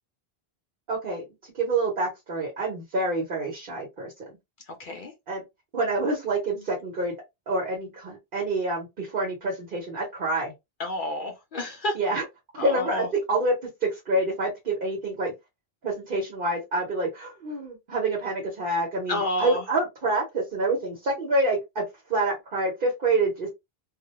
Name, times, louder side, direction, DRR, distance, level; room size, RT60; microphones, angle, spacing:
voice 1, 0.9-1.2 1.5-4.1 5.3-5.4 5.7-7.1 7.5-10.5 11.9-12.2 12.5-13.5 13.8-15.3 15.8-21.8 22.1-23.5, right 2 dB, 60° right, 1.0 m, -27 dB
voice 2, 4.7-5.1 10.8-12.0 12.6-13.1 19.1-19.6, left 1 dB, 60° left, 0.7 m, -30 dB
2.3 x 2.1 x 2.8 m
omnidirectional pair, 1.0 m